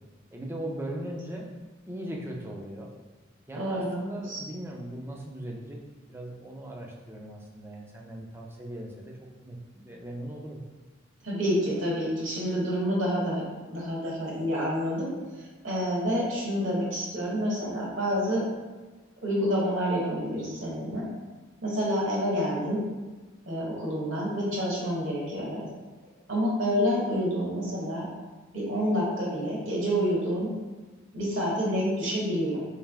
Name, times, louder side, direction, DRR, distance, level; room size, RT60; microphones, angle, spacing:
voice 1, 0.3-1.5 1.9-2.9 3.5-5.8 6.1-10.6, right 1 dB, 10° right, -1 dB, 0.4 m, -39 dB
voice 2, 3.5-4.4 11.2-18.4 19.2-21.1 21.6-22.8 23.5-25.6 26.3-28.1 28.5-30.5 31.1-32.6, equal, 65° right, -4 dB, 1.2 m, -28 dB
3.3 x 2.9 x 3.5 m, 1.3 s
head